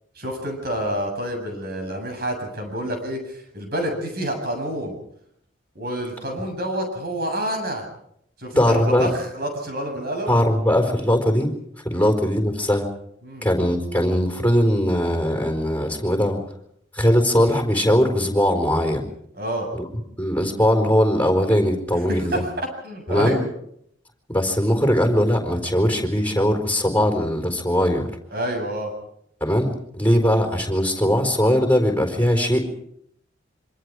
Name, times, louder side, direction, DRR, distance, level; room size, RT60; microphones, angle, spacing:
voice 1, 0.2-5.0 5.7-7.8 8.4-10.3 11.9-12.1 13.2-13.5 19.4-19.7 22.1-23.5 28.3-28.9, equal, 50° right, 4 dB, 7.9 m, -28 dB
voice 2, 8.6-9.1 10.3-11.5 11.8-12.9 13.4-16.4 16.9-19.0 19.7-19.9 20.2-22.4 23.1-23.4 24.3-28.1 29.4-32.6, equal, 10° left, 3 dB, 4.4 m, -20 dB
26.5 x 25.5 x 4.9 m, 0.70 s
head